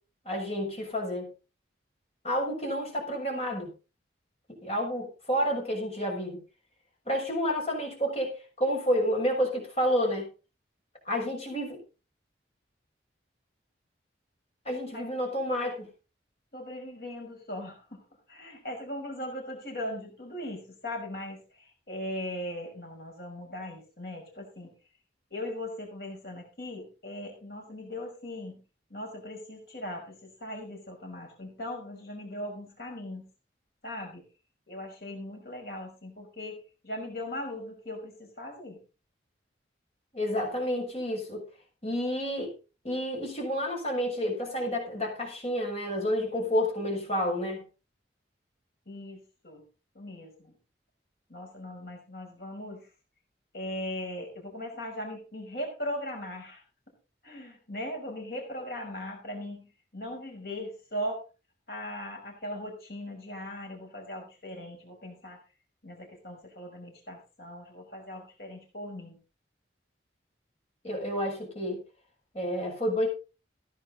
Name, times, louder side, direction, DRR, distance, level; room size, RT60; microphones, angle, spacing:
voice 1, 0.2-1.3 2.2-3.7 4.6-6.4 7.1-10.3 11.0-11.8 14.6-15.9 40.1-41.4 41.8-42.5 42.8-47.6 70.8-71.8 72.3-73.1, equal, 35° left, 0 dB, 6.5 m, -30 dB
voice 2, 16.5-18.0 18.3-24.7 25.3-28.6 28.9-33.3 33.8-34.2 34.7-38.8 48.9-49.6 49.9-50.5 51.3-52.9 53.5-56.6 57.2-61.2 61.7-65.4 65.8-69.2, left 1 dB, 55° left, 1 dB, 5.7 m, -39 dB
16.0 x 10.5 x 4.0 m, 0.33 s
head